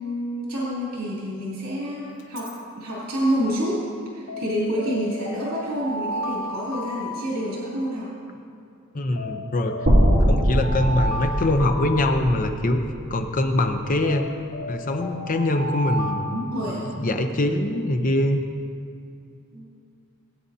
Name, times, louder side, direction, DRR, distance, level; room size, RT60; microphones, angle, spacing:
voice 1, 0.0-3.8 4.1-8.1 16.3-16.8 19.5-19.6, equal, 80° right, -7 dB, 2.7 m, -28 dB
Alarm, 2.2-2.6 4.3-8.0 9.2-12.9 14.0-17.2, left 1 dB, 60° left, 0.9 m, -34 dB
voice 2, 8.9-9.8 10.2-12.8 13.1-14.3 14.7-16.2 16.7-18.5, left 1 dB, 40° left, 5 dB, 0.7 m, -23 dB
sound 1, 9.9-14.0, equal, 55° right, 2.0 m, -22 dB
19.5 x 8.6 x 2.8 m, 2.4 s
head